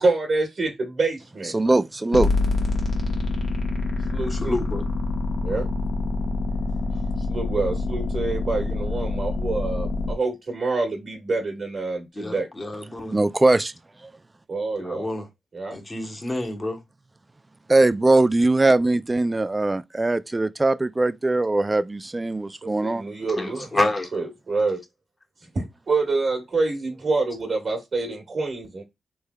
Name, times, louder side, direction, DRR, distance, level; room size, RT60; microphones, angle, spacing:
voice 1, 0.0-1.5 4.1-4.6 5.4-5.7 7.3-12.5 14.5-15.1 15.5-15.8 22.6-23.8 24.1-24.8 25.5-28.8, right 3 dB, 60° right, 1.3 m, -26 dB
voice 2, 1.5-2.3 13.1-13.7 17.7-23.0, right 2 dB, 25° right, 0.3 m, -20 dB
sound 1, 2.1-10.1, left 3 dB, 65° left, 1.0 m, -26 dB
voice 3, 4.3-4.9 12.1-13.2 14.8-15.3 15.7-16.8 23.4-24.1, left 1 dB, 35° left, 1.0 m, -28 dB
3.3 x 3.2 x 2.2 m
cardioid pair, 60°, 0 cm